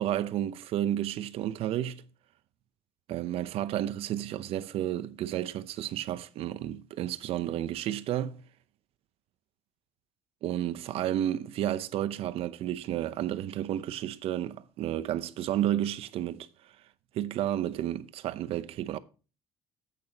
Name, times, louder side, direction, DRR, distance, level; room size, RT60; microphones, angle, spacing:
voice 1, 0.0-2.0 3.1-8.4 10.4-16.5 17.1-19.0, right 12 dB, 65° right, 0.7 m, -31 dB
10.5 x 8.5 x 2.8 m
cardioid pair, 120°, 11 cm